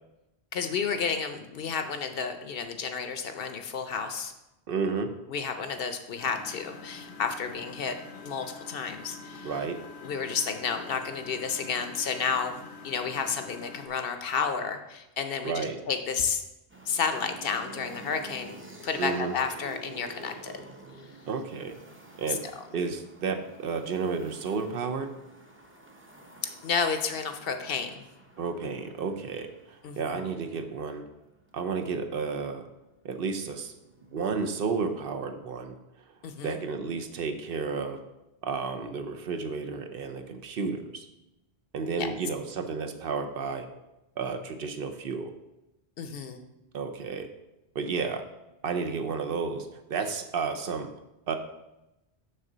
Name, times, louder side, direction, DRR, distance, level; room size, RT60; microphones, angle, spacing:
voice 1, 0.5-4.3 5.3-8.0 8.2-9.5 10.0-16.4 16.9-20.5 22.3-22.4 26.4-28.0 29.8-30.3 36.2-36.6 41.9-42.1 46.0-46.4, left 6 dB, 65° left, 7 dB, 0.8 m, -31 dB
voice 2, 4.7-5.1 9.4-9.8 15.4-15.8 19.0-19.3 21.3-21.7 22.2-22.4 22.7-25.1 28.4-29.5 30.0-31.1 31.5-32.7 33.0-33.7 34.1-35.7 36.4-38.0 38.4-41.1 41.7-43.7 44.2-45.3 46.7-47.3 47.7-48.2 48.6-50.9 51.3-51.4, right 5 dB, 65° right, 6 dB, 0.8 m, -32 dB
Engine, 6.2-13.9, left 4 dB, 85° left, 1.1 m, -46 dB
sound 1, 16.7-31.6 32.6-34.3, right 1 dB, 15° right, 0.6 m, -50 dB
6.6 x 6.2 x 3.9 m, 0.94 s
omnidirectional pair, 1.1 m